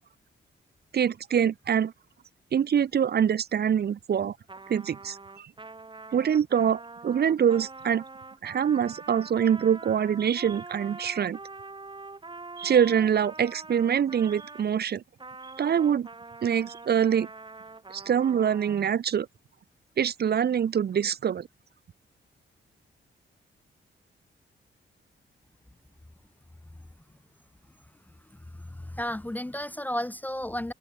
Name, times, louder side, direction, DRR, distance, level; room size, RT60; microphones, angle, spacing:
voice 1, 0.9-1.9 2.5-4.4 4.7-5.5 6.1-8.0 8.4-11.4 12.6-15.0 15.6-16.1 16.4-17.3 17.9-19.3 20.0-21.5, right 8 dB, 50° right, 0.9 m, -25 dB
Trumpet, 4.5-14.7 15.2-19.0, right 3 dB, 25° right, 6.7 m, -44 dB
voice 2, 28.5-30.7, left 1 dB, 10° left, 0.6 m, -33 dB
open air
cardioid pair, 115°, 21 cm